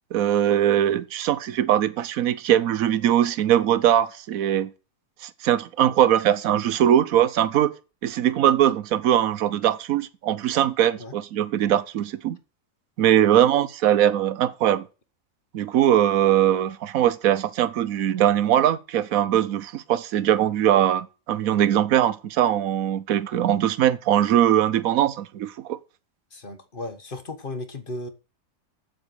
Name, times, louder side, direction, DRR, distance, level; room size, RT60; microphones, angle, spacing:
voice 1, 0.1-4.7 5.2-7.7 8.0-12.4 13.0-14.9 15.5-25.8, right 11 dB, 65° right, 1.1 m, -21 dB
voice 2, 26.3-28.1, left 2 dB, 35° left, 1.5 m, -35 dB
8.1 x 7.8 x 6.7 m
omnidirectional pair, 1.7 m